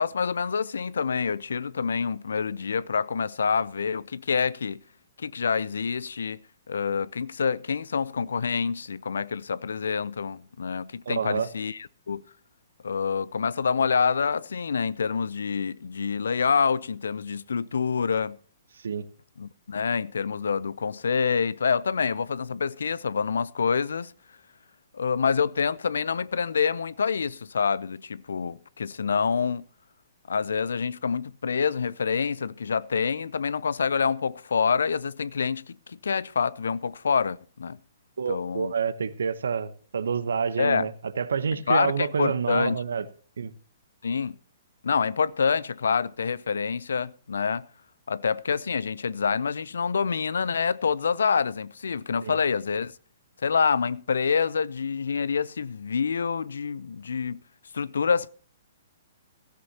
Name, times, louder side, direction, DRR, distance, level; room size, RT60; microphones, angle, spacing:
voice 1, 0.0-4.8 5.2-6.4 6.7-11.8 12.1-12.2 12.8-18.4 19.4-24.1 24.9-29.6 30.3-37.8 38.3-38.7 40.6-40.9 41.7-42.8 44.0-44.3 44.8-47.7 48.1-52.9 53.4-57.4 57.7-58.3, left 6 dB, 75° left, 0.5 m, -27 dB
voice 2, 11.1-11.5 18.8-19.1 38.2-43.1 43.4-43.5 52.2-52.4, right 6 dB, 70° right, 0.9 m, -28 dB
16.0 x 14.0 x 2.9 m
hypercardioid pair, 125°, 0 cm